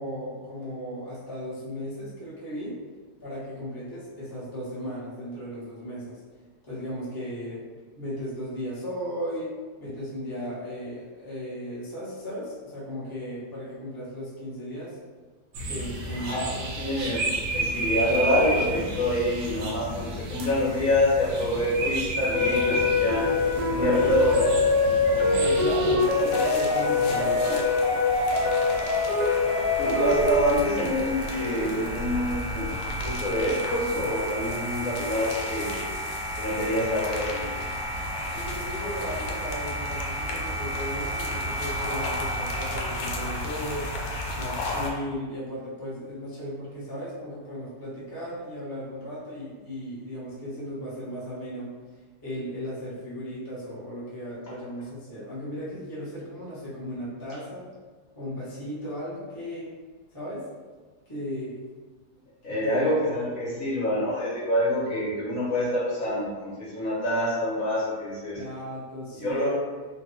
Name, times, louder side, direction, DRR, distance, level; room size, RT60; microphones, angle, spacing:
voice 1, 0.0-2.8 3.2-6.2 6.6-7.6 8.0-9.5 9.8-15.0 15.6-16.6 23.8-24.1 24.9-27.6 38.3-43.9 44.3-51.7 52.2-57.7 58.1-59.7 60.1-60.4 61.1-61.5 62.5-62.9 63.4-63.8 68.3-69.5, equal, 20° left, -9 dB, 0.7 m, -36 dB
sound 1, 15.5-26.0, right 2 dB, 70° right, 1.0 m, -31 dB
voice 2, 16.1-17.2 17.5-23.3 23.7-24.6 26.8-27.4 29.8-32.7 33.0-35.8 36.4-37.5 62.4-68.4 69.1-69.5, equal, 60° left, -7 dB, 1.1 m, -26 dB
sound 2, 22.3-30.3, left 4 dB, 40° left, 1.2 m, -24 dB
sound 3, 26.0-44.9, equal, 80° left, 1.2 m, -32 dB
3.3 x 2.2 x 3.0 m, 1.4 s
omnidirectional pair, 1.8 m